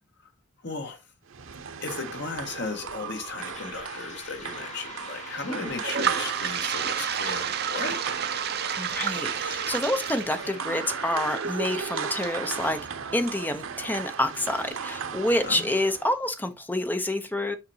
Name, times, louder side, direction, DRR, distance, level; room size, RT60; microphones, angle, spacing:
voice 1, 0.6-1.1 1.8-8.0 15.4-15.7, left 4 dB, 60° left, 1.4 m, -35 dB
sound 1, 1.3-16.1, right 6 dB, 85° right, 0.8 m, -36 dB
sound 2, 3.0-10.7, left 3 dB, 35° left, 1.9 m, -44 dB
Toilet flush, 5.7-13.7, right 9 dB, 50° right, 0.6 m, -32 dB
voice 2, 8.8-12.8 13.1-17.6, left 1 dB, 10° left, 0.6 m, -28 dB
6.7 x 5.8 x 2.7 m
head